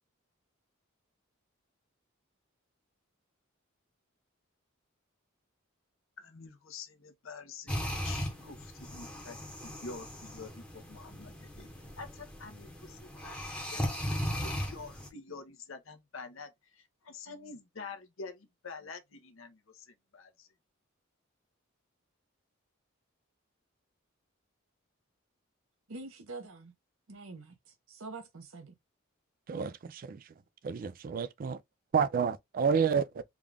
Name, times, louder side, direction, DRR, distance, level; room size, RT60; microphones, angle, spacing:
voice 1, 6.2-11.7 12.0-14.2 14.4-20.5, left 4 dB, 75° left, 0.8 m, -47 dB
sound 1, 7.7-15.1, equal, 5° left, 0.9 m, -38 dB
voice 2, 25.9-26.7 27.1-28.8, right 3 dB, 75° right, 1.0 m, -45 dB
voice 3, 29.5-30.2 30.6-31.6 31.9-33.2, right 6 dB, 45° right, 0.3 m, -30 dB
3.6 x 2.4 x 3.3 m
head